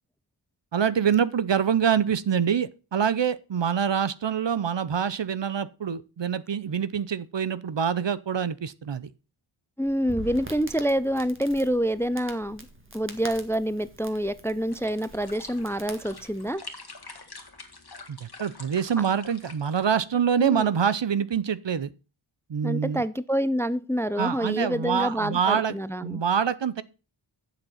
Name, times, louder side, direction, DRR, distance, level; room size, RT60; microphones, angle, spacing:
voice 1, 0.7-9.1 18.1-21.9 22.5-23.0 24.2-25.8 26.0-26.8, right 7 dB, 60° right, 0.7 m, -25 dB
voice 2, 9.8-12.7 12.9-16.6 20.4-20.7 22.6-26.2, equal, 5° left, 0.4 m, -27 dB
Crackle, 9.8-16.5, right 2 dB, 25° right, 1.8 m, -44 dB
sound 1, 14.7-20.1, left 3 dB, 50° left, 1.7 m, -46 dB
8.0 x 7.2 x 5.7 m
wide cardioid pair, 45°, 49 cm